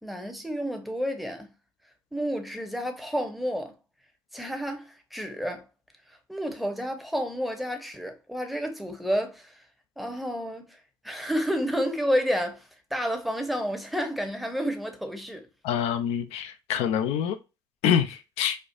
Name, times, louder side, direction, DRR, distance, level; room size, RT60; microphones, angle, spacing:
voice 1, 0.0-1.5 2.1-3.7 4.3-5.7 6.3-9.5 10.0-10.8 11.0-12.6 12.9-15.5, equal, ahead, 0.9 m, -30 dB
voice 2, 15.6-17.4 17.8-18.6, left 9 dB, 70° left, 0.5 m, -26 dB
4.3 x 2.3 x 2.4 m
hypercardioid pair, 55°, 11 cm